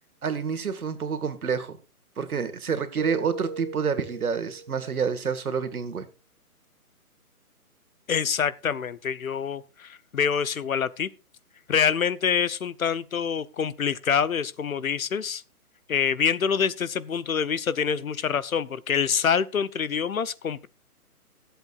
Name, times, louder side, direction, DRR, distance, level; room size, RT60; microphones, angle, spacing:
voice 1, 0.2-1.8 2.2-6.1, right 6 dB, 70° right, 1.8 m, -28 dB
Keyboard (musical), 3.0-5.0, right 4 dB, 35° right, 1.8 m, -37 dB
voice 2, 8.1-11.1 11.7-15.4 15.9-20.7, left 7 dB, 65° left, 0.9 m, -26 dB
23.0 x 8.0 x 2.5 m
hypercardioid pair, 180°, 45 cm